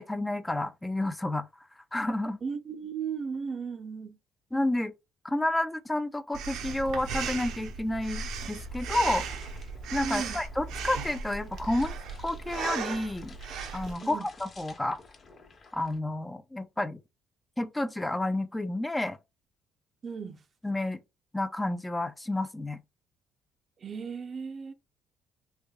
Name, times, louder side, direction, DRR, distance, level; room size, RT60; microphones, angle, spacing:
voice 1, 0.0-1.5 1.8-2.4 4.5-4.9 5.2-9.2 9.9-11.9 12.2-13.4 13.7-15.0 15.7-17.0 17.6-19.2 20.6-21.0 21.3-22.8, left 1 dB, 10° left, 0.4 m, -30 dB
voice 2, 2.4-4.2 10.0-10.4 14.0-14.3 20.0-20.4 23.8-24.7, right 6 dB, 45° right, 0.5 m, -36 dB
Breathing, 6.3-14.0, right 5 dB, 80° right, 0.7 m, -36 dB
sound 1, 8.6-16.0, left 4 dB, 45° left, 1.0 m, -52 dB
3.3 x 3.3 x 2.3 m
supercardioid pair, 85°, 0 cm